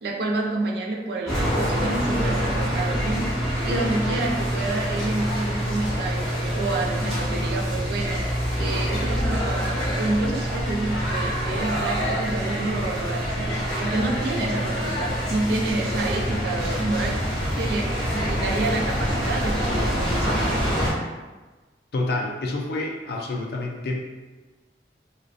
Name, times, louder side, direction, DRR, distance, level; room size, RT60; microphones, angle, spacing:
voice 1, 0.0-8.2 8.6-13.5 13.8-20.6, right 2 dB, 65° right, 0 dB, 0.4 m, -29 dB
sound 1, 1.3-20.9, equal, 5° left, 0.7 m, -26 dB
voice 2, 21.9-24.0, left 2 dB, 60° left, 1 dB, 0.4 m, -28 dB
2.5 x 2.1 x 2.4 m, 1.2 s
head